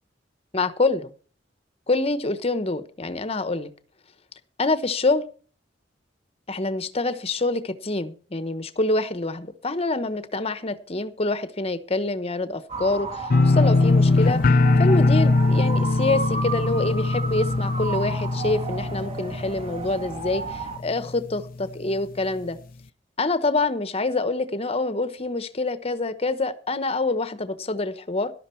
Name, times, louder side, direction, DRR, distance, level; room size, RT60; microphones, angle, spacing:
voice 1, 0.5-1.1 1.9-3.7 4.6-5.2 6.5-14.4 14.8-22.6 23.2-28.3, left 2 dB, 35° left, 12 dB, 1.1 m, -26 dB
sound 1, 12.7-20.8, right 2 dB, 35° right, 1.7 m, -33 dB
sound 2, 13.3-20.2 20.5-21.0 21.4-21.5, left 3 dB, 55° left, 0.6 m, -21 dB
12.5 x 11.5 x 4.6 m, 0.40 s
head